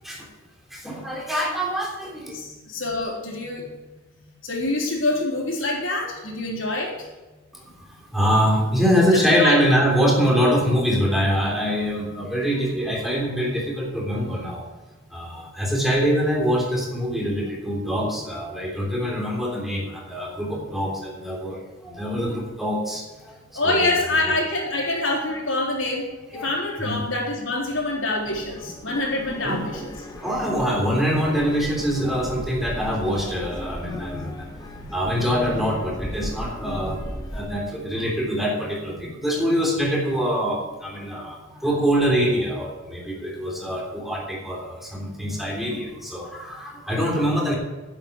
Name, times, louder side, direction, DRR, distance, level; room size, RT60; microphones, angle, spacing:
voice 1, 0.7-2.4 8.1-14.6 15.1-21.6 21.8-23.3 23.6-24.3 26.3-27.0 29.4-29.9 30.1-34.5 34.8-37.0 37.3-47.5, equal, ahead, -2 dB, 3.3 m, -24 dB
voice 2, 2.3-3.7 4.2-7.1 9.1-9.6 23.5-29.8 38.9-39.1, left 2 dB, 75° left, -1 dB, 3.8 m, -26 dB
sound 1, 28.2-37.5, equal, 20° left, 1.3 m, -36 dB
10.5 x 8.0 x 8.1 m, 1.2 s
head